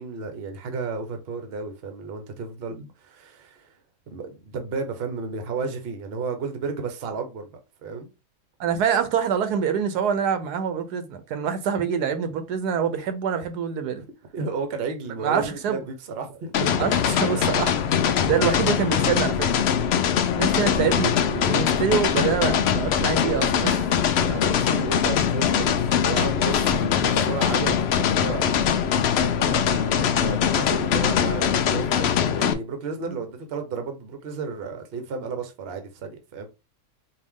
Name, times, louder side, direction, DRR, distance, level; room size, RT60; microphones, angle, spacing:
voice 1, 0.0-3.7 4.1-7.5 7.8-8.1 14.3-16.8 20.6-20.7 24.2-28.8 29.3-36.5, right 4 dB, 50° right, 0.9 m, -33 dB
voice 2, 8.6-14.0 15.2-15.8 16.8-19.6 20.4-23.9 26.6-26.9 33.1-33.2, right 7 dB, 90° right, 1.3 m, -26 dB
sound 1, 16.5-32.5, left 8 dB, 75° left, 0.5 m, -22 dB
sound 2, 17.4-31.5, left 1 dB, 25° right, 0.4 m, -39 dB
4.4 x 2.6 x 3.6 m
omnidirectional pair, 1.7 m